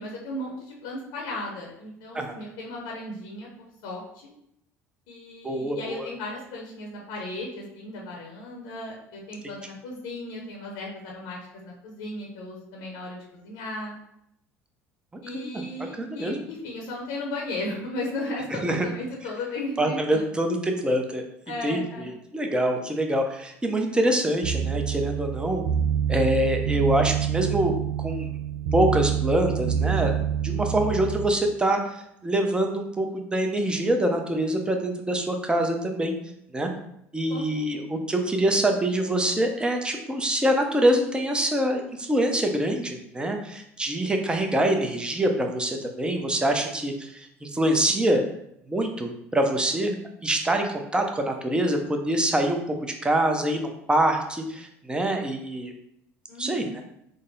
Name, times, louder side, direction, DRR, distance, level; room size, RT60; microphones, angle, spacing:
voice 1, 0.0-3.5 3.8-4.3 5.1-11.4 11.6-13.9 15.2-20.3 21.5-22.1 37.3-37.4 37.7-38.0 56.3-56.7, left 2 dB, 70° left, -1 dB, 0.8 m, -35 dB
voice 2, 5.4-6.1 15.3-15.5 15.9-16.4 18.5-18.9 19.8-21.2 21.6-25.6 26.1-28.3 28.7-30.1 30.4-36.1 36.5-36.7 37.1-48.2 48.7-50.0 50.2-55.7 56.4-56.8, right 1 dB, 10° right, 4 dB, 0.7 m, -25 dB
sound 1, 24.4-31.3, right 9 dB, 65° right, 0.4 m, -27 dB
3.8 x 2.1 x 3.9 m, 0.76 s
hypercardioid pair, 75°, 7 cm